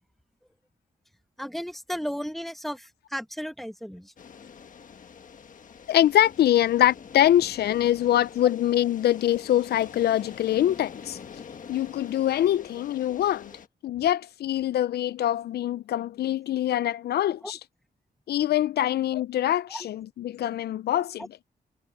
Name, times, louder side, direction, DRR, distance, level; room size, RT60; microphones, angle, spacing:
voice 1, 1.4-4.1 17.4-17.5 19.7-19.9 21.2-21.3, equal, ahead, 1.0 m, -34 dB
sound 1, 4.2-13.7, left 6 dB, 55° left, 1.3 m, -45 dB
voice 2, 5.9-11.2 11.7-13.5 13.8-17.6 18.3-21.3, left 12 dB, 80° left, 0.4 m, -24 dB
wide cardioid pair, 150°, 17 cm